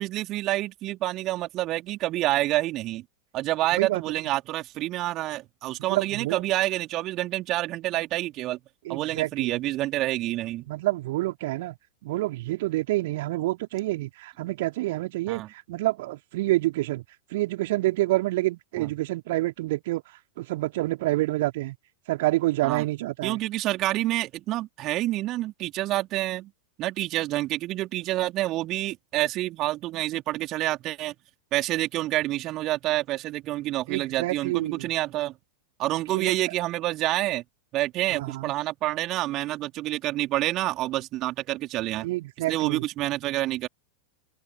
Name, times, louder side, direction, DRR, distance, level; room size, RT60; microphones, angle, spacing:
voice 1, 0.0-3.0 3.3-8.6 8.9-10.7 15.3-15.5 18.8-18.9 22.6-22.9 23.2-26.5 26.8-31.1 31.5-35.3 35.8-37.4 37.7-42.1 42.5-43.7, right 16 dB, 35° right, 3.6 m, -28 dB
voice 2, 3.7-4.0 5.9-6.4 8.9-9.6 10.7-11.8 12.0-17.0 17.3-20.0 20.4-21.8 22.1-23.4 33.9-34.9 36.1-36.5 38.1-38.5 42.0-42.9, right 18 dB, 50° right, 3.6 m, -28 dB
figure-of-eight pair, 90°, 0 cm